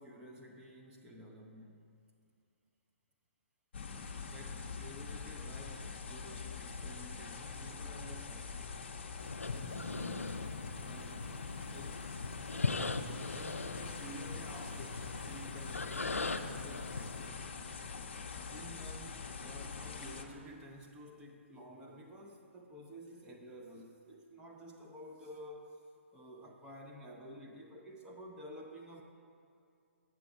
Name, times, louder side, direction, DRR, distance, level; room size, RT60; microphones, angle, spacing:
voice 1, 0.0-1.9 4.3-8.7 9.5-11.3 11.7-12.1 13.0-17.5 18.5-25.9 26.1-29.0, equal, 10° right, -1 dB, 0.6 m, -51 dB
sound 1, 3.7-20.2, left 5 dB, 55° left, 0.7 m, -44 dB
sound 2, 9.2-17.3, left 3 dB, 85° left, 0.4 m, -40 dB
7.5 x 6.9 x 4.7 m, 2.4 s
figure-of-eight pair, 130°, 7 cm